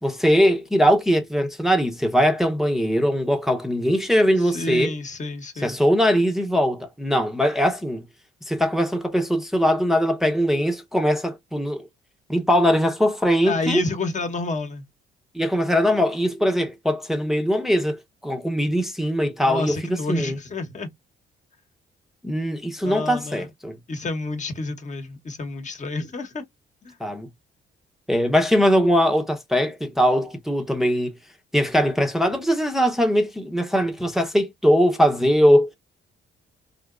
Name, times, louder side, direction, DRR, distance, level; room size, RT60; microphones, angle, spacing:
voice 1, 0.0-4.9 5.6-8.0 8.5-11.8 12.3-13.8 15.3-20.4 22.2-23.8 27.0-27.3 28.1-31.1 31.5-35.8, equal, ahead, 0.8 m, -21 dB
voice 2, 4.4-5.8 13.5-14.8 19.4-20.9 22.8-23.5 23.9-26.4 26.8-27.0, left 3 dB, 40° left, 1.1 m, -29 dB
3.5 x 2.8 x 2.4 m
cardioid pair, 90°, 20 cm